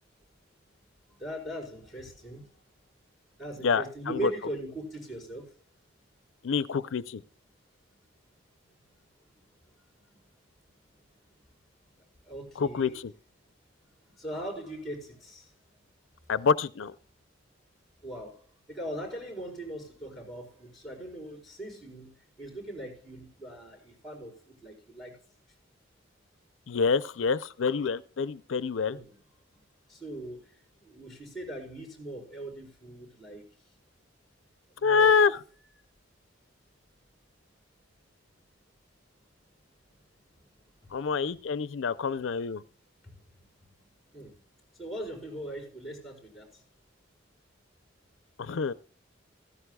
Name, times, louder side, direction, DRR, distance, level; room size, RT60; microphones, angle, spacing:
voice 1, 1.1-2.5 3.4-5.4 12.3-13.0 14.2-15.5 18.0-18.4 18.7-22.1 22.4-25.2 28.8-29.2 29.9-30.5 30.8-33.4 34.8-35.2 43.0-43.1 44.1-44.4 44.8-46.6, right 1 dB, ahead, 4.5 m, -40 dB
voice 2, 3.6-4.3 6.4-7.2 12.6-12.9 16.3-16.9 26.7-29.0 34.8-35.3 40.9-42.6 48.4-48.7, left 5 dB, 85° left, 0.5 m, -26 dB
16.0 x 14.0 x 2.3 m
head